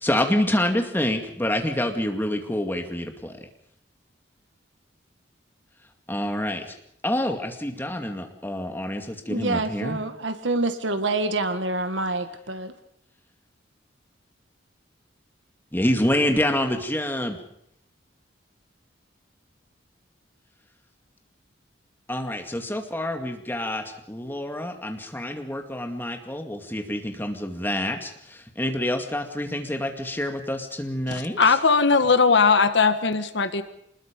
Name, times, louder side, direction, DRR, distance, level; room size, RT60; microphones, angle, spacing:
voice 1, 0.0-3.4 6.1-6.6 7.0-10.0 15.7-17.4 22.1-31.4, left 1 dB, 10° left, 2.3 m, -27 dB
voice 2, 9.3-12.7, right 2 dB, 70° right, 1.7 m, -27 dB
voice 3, 31.1-33.6, left 4 dB, 70° left, 1.5 m, -19 dB
25.5 x 20.5 x 5.3 m
head